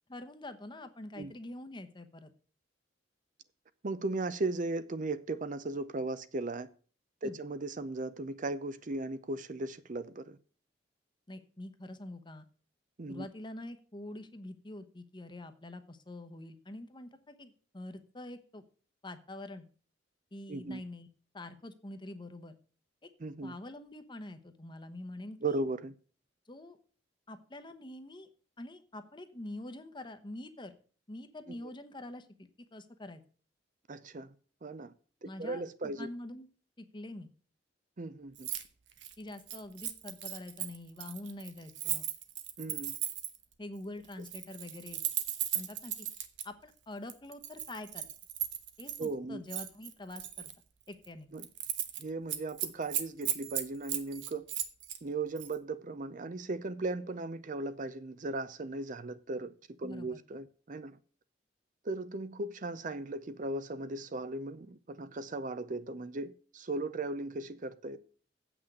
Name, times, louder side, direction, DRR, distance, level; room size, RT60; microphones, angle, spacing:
voice 1, 0.1-2.3 7.2-7.4 11.3-12.5 13.1-18.6 19.0-19.7 20.3-21.1 21.3-22.5 23.0-23.1 23.4-25.6 26.5-26.8 27.3-28.3 28.6-30.7 31.1-33.2 35.2-35.6 36.0-36.5 36.8-37.3 39.2-42.1 43.6-45.0 45.5-46.1 46.4-48.1 48.8-50.5 50.9-51.3 59.8-60.2, left 1 dB, 25° left, 0.9 m, -45 dB
voice 2, 3.8-6.7 7.2-10.4 13.0-13.3 20.5-20.8 23.2-23.6 25.4-25.9 31.5-31.7 33.9-34.3 34.6-34.9 35.2-36.1 38.0-38.5 42.6-43.0 49.0-49.4 51.3-51.5 52.0-54.4 55.0-59.5 59.8-61.0 61.8-68.0, right 2 dB, 45° right, 0.6 m, -37 dB
Keys jangling, 38.4-38.6 38.9-43.4 44.1-46.4 47.1-49.1 49.5-50.5 50.9-51.1 51.4-52.0 52.3-55.0 55.4-55.5, right 11 dB, 85° right, 1.1 m, -36 dB
8.1 x 6.1 x 7.8 m
head